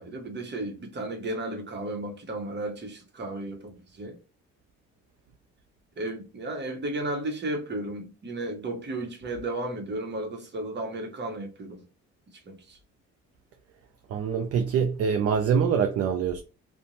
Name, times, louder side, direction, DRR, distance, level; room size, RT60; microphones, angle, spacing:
voice 1, 0.0-4.2 6.0-11.8 12.5-12.8, right 2 dB, 35° right, 0.9 m, -34 dB
voice 2, 14.1-16.4, right 7 dB, 55° right, 0.4 m, -24 dB
2.5 x 2.1 x 2.9 m
cardioid pair, 90°, 30 cm